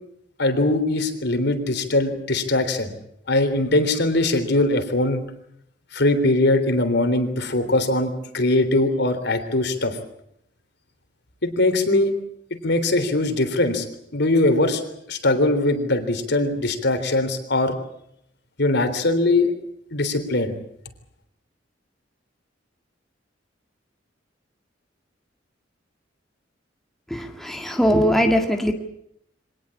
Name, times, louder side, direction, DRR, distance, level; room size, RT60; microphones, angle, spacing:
voice 1, 0.4-2.9 3.3-5.2 5.9-10.0 11.4-12.1 12.6-13.9 14.1-14.8 15.1-17.7 18.6-19.5 19.9-20.6, left 2 dB, 65° left, 8 dB, 3.5 m, -21 dB
voice 2, 27.1-28.7, equal, ahead, 3 dB, 1.9 m, -20 dB
24.5 x 19.0 x 8.5 m, 0.75 s
head